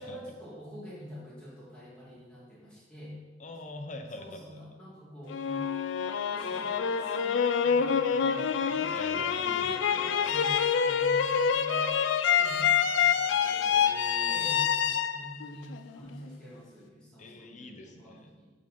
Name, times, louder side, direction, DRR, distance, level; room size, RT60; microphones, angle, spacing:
voice 1, 0.0-3.1 4.1-5.6 6.3-11.9 12.3-13.7 14.3-18.5, equal, 5° left, -8 dB, 2.5 m, -47 dB
voice 2, 3.4-4.6 8.9-10.4 13.7-14.5 17.2-18.3, left 2 dB, 40° left, 5 dB, 0.7 m, -44 dB
sound 1, 5.3-16.3, left 7 dB, 80° left, 0.4 m, -27 dB
9.0 x 4.0 x 5.1 m, 1.3 s
head